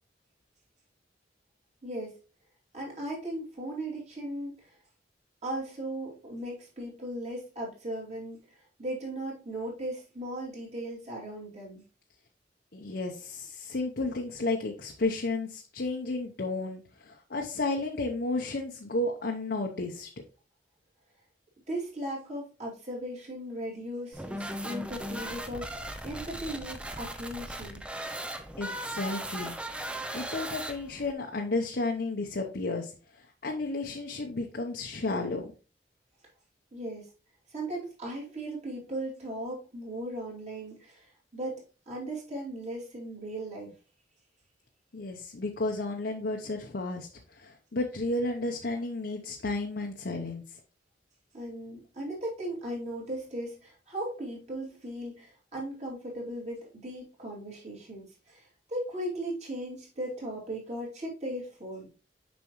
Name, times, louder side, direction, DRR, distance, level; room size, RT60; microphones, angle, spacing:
voice 1, 1.8-2.2 2.7-4.7 5.4-11.8 21.7-27.8 36.7-37.1 37.5-41.6 41.9-43.7 51.3-61.9, right 1 dB, 40° right, -3 dB, 2.8 m, -37 dB
voice 2, 12.7-20.1 28.6-29.5 30.1-35.5 44.9-50.4, left 2 dB, 60° left, 2 dB, 0.8 m, -32 dB
sound 1, 24.1-31.1, right 1 dB, 5° right, 0.5 m, -38 dB
7.0 x 5.2 x 3.0 m, 0.35 s
head